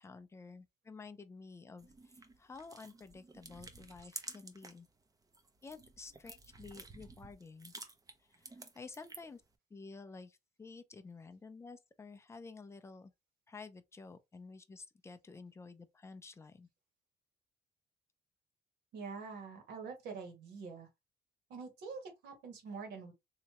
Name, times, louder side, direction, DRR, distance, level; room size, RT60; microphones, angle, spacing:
voice 1, 0.0-4.9 5.6-7.7 8.2-9.4 9.7-13.1 13.5-16.7, left 4 dB, 15° left, 0.5 m, -51 dB
sound 1, 1.8-4.9 5.2-9.4, right 3 dB, 20° right, 0.7 m, -52 dB
voice 2, 18.9-20.9 21.5-23.1, right 5 dB, 75° right, 1.6 m, -45 dB
3.3 x 2.9 x 3.0 m
cardioid pair, 110°, 17 cm